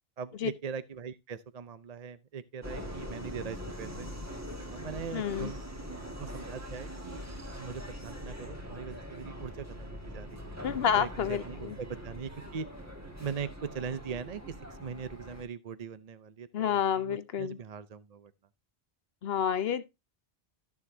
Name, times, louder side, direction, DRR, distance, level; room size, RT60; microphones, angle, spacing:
voice 1, 0.2-4.1 4.7-5.6 6.2-10.5 10.9-12.7 13.2-18.3, right 6 dB, 45° right, 0.6 m, -41 dB
Subway metro underground, 2.6-15.4, equal, 15° right, 1.8 m, -42 dB
voice 2, 5.1-5.5 10.6-11.8 16.5-17.6 19.2-19.8, left 8 dB, 75° left, 1.0 m, -29 dB
13.0 x 7.1 x 2.7 m
omnidirectional pair, 1.0 m